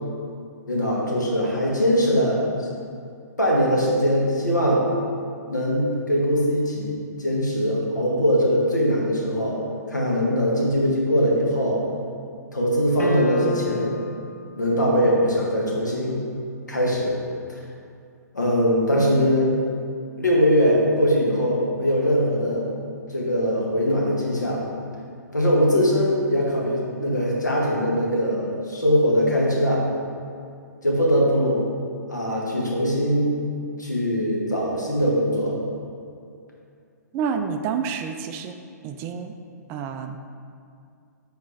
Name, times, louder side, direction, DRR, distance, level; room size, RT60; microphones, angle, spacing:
voice 1, 0.7-2.7 3.4-4.8 5.5-9.6 9.9-11.8 12.5-14.0 14.6-16.2 16.7-17.2 17.5-17.6 18.3-19.5 20.2-22.7 23.1-24.6 25.3-29.8 30.8-31.6 32.1-33.3 33.8-35.6, equal, 85° left, -4 dB, 1.5 m, -21 dB
sound 1, 13.0-14.1, left 1 dB, 65° left, 0.9 m, -29 dB
voice 2, 37.1-38.5 38.8-39.3 39.7-40.2, right 6 dB, 25° right, 6 dB, 0.3 m, -28 dB
8.2 x 4.1 x 3.3 m, 2.4 s
figure-of-eight pair, 120°, 9 cm